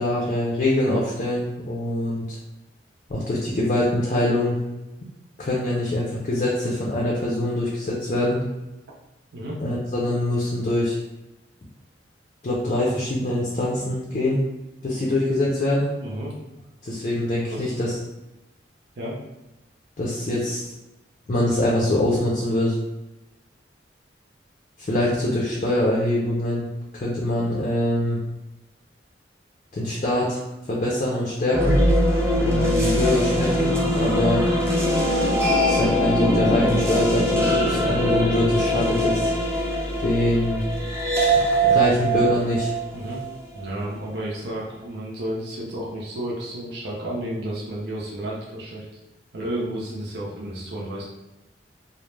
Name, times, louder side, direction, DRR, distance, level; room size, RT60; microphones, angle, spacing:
voice 1, 0.0-2.4 3.1-4.6 5.4-8.4 9.6-11.0 12.4-14.4 14.8-15.9 16.8-17.9 20.0-20.6 21.3-22.8 24.8-26.7 26.9-28.2 29.7-30.4 30.7-31.8 32.4-34.4 35.7-39.3 40.0-40.6 41.4-42.7, left 1 dB, 40° left, -4 dB, 0.4 m, -24 dB
sound 1, 31.5-43.6, equal, 15° right, 0.5 m, -22 dB
voice 2, 42.9-43.2 43.5-48.8 49.3-51.0, right 1 dB, 65° right, -5 dB, 0.5 m, -32 dB
2.3 x 2.0 x 3.1 m, 0.97 s
head